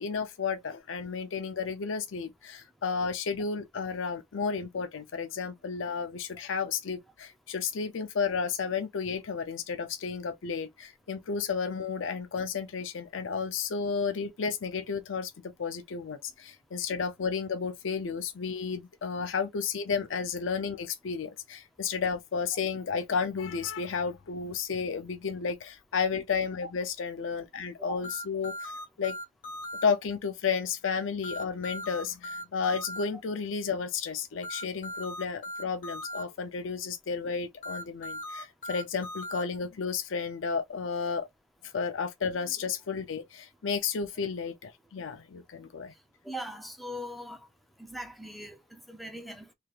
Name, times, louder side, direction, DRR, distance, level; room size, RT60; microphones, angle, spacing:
voice 1, 0.0-15.3 15.6-28.7 29.0-29.2 29.8-41.3 41.6-45.9, left 5 dB, 85° left, 0.5 m, -32 dB
sound 1, 28.0-29.8 31.2-33.0 34.4-36.2 37.6-39.4, left 1 dB, 45° left, 1.5 m, -38 dB
voice 2, 46.2-47.4 47.8-49.5, equal, ahead, 0.6 m, -40 dB
3.3 x 3.2 x 2.4 m
head